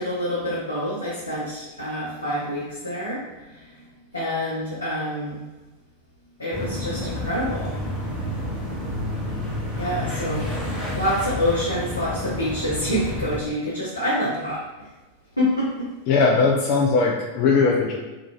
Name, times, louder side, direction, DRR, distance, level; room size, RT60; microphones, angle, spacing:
voice 1, 0.0-3.2 3.5-3.7 4.1-5.4 6.4-7.8 9.8-10.5 10.9-14.9 15.4-15.9, equal, 80° left, -8 dB, 0.6 m, -27 dB
sound 1, 6.5-13.4, left 1 dB, 20° left, 0.9 m, -30 dB
voice 2, 16.1-18.0, left 4 dB, 45° left, -1 dB, 0.3 m, -19 dB
2.4 x 2.4 x 3.0 m, 1.1 s
figure-of-eight pair, 90°, 0 cm